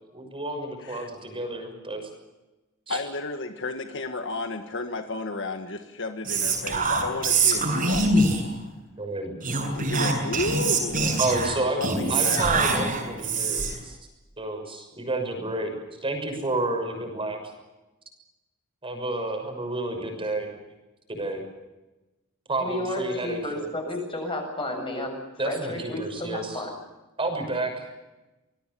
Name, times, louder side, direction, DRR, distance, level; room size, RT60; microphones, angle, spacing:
voice 1, 0.1-2.1 2.9-3.0 9.0-9.3 11.2-14.0 14.4-15.7 16.0-17.4 18.8-20.5 21.1-21.4 22.5-23.7 25.4-26.6 27.2-27.9, right 2 dB, 25° right, 4 dB, 6.4 m, -30 dB
voice 2, 2.9-8.1 9.7-11.2 11.6-12.7, left 3 dB, 60° left, 6 dB, 1.7 m, -32 dB
Whispering, 6.2-8.6 9.4-13.8, right 3 dB, 40° right, 7.0 m, -24 dB
voice 3, 22.6-25.2 25.4-26.7, left 1 dB, 25° left, 3 dB, 7.6 m, -32 dB
26.5 x 20.5 x 7.0 m, 1.1 s
head